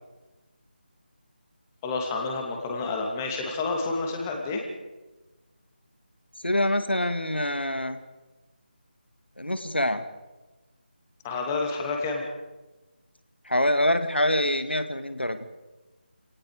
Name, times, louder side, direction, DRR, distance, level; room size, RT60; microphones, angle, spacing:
voice 1, 1.8-4.6 11.2-12.2, left 3 dB, 15° left, 1 dB, 2.6 m, -29 dB
voice 2, 6.4-8.0 9.4-10.0 13.4-15.4, left 1 dB, 85° left, 10 dB, 1.7 m, -25 dB
27.5 x 18.5 x 5.1 m, 1.1 s
figure-of-eight pair, 160°, 6 cm